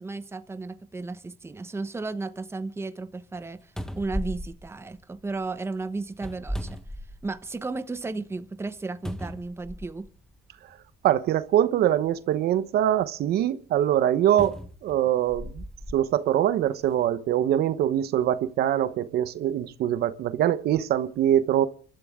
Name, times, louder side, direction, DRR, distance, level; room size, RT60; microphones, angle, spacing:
voice 1, 0.0-3.7 4.0-6.8 7.2-10.1, right 3 dB, 15° right, 1.0 m, -34 dB
sound 1, 3.8-5.5 6.1-7.6 8.0-8.1 9.0-10.2 11.1-11.2 14.4-16.0 16.7-16.9, equal, 5° left, 1.2 m, -36 dB
voice 2, 11.0-15.6 15.9-21.7, right 11 dB, 70° right, 1.0 m, -23 dB
29.5 x 12.5 x 3.7 m
cardioid pair, 110°, 17 cm